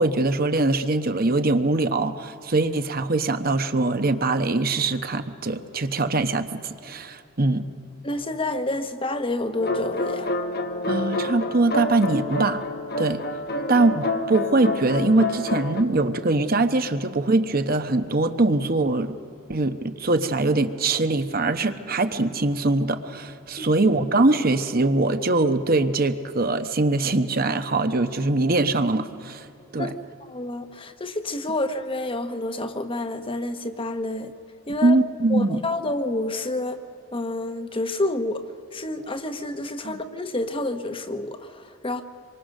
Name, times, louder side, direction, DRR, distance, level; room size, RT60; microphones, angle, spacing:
voice 1, 0.0-7.6 10.9-12.6 13.0-13.2 13.7-19.1 19.5-29.5 29.7-29.9 34.8-35.6 39.8-40.0, right 2 dB, 45° right, 9 dB, 1.1 m, -22 dB
voice 2, 8.0-10.3 13.5-13.8 23.6-23.7 29.8-29.9 30.3-34.3 34.7-35.0 35.3-36.8 37.1-42.0, left 2 dB, 25° left, 8 dB, 1.1 m, -29 dB
sound 1, 9.6-15.8, left 2 dB, 50° left, 1.3 m, -28 dB
26.5 x 24.0 x 6.6 m, 2.6 s
head